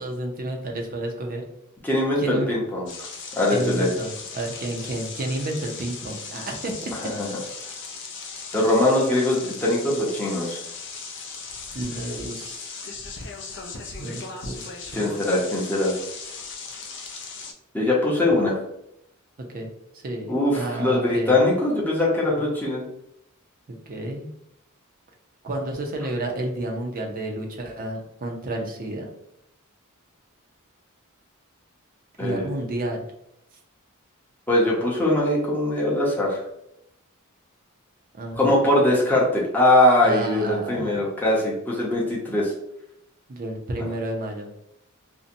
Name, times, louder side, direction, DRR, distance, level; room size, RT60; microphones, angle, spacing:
voice 1, 0.0-1.5 2.2-2.5 3.5-7.1 11.7-12.7 14.0-15.1 18.3-18.4 19.5-21.4 22.3-22.5 23.9-24.3 25.4-29.1 32.2-33.0 38.2-38.6 40.0-41.0 43.3-44.5, right 1 dB, 40° right, 2 dB, 0.5 m, -31 dB
voice 2, 1.8-2.9 3.4-3.9 7.2-7.3 8.5-10.6 14.9-15.9 17.7-18.6 20.3-22.8 32.2-32.4 34.5-36.4 38.3-42.5, left 1 dB, 10° left, -5 dB, 0.6 m, -21 dB
sound 1, 2.9-17.5, left 4 dB, 55° left, 0.4 m, -37 dB
2.6 x 2.1 x 2.6 m, 0.80 s
head